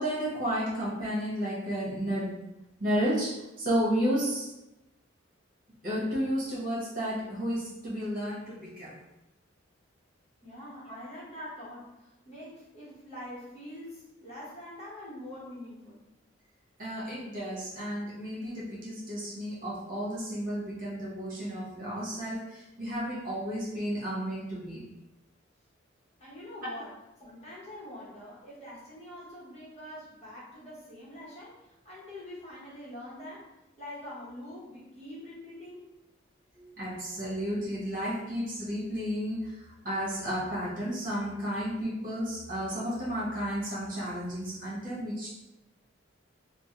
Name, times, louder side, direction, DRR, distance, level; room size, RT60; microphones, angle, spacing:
voice 1, 0.0-2.4 2.8-4.5 5.8-9.0 16.8-24.8 26.6-26.7 36.6-45.3, equal, 45° right, -7 dB, 1.0 m, -32 dB
voice 2, 10.4-16.0 17.3-17.4 26.2-35.8, left 1 dB, 35° left, -7 dB, 0.9 m, -45 dB
3.0 x 2.1 x 2.8 m, 0.94 s
head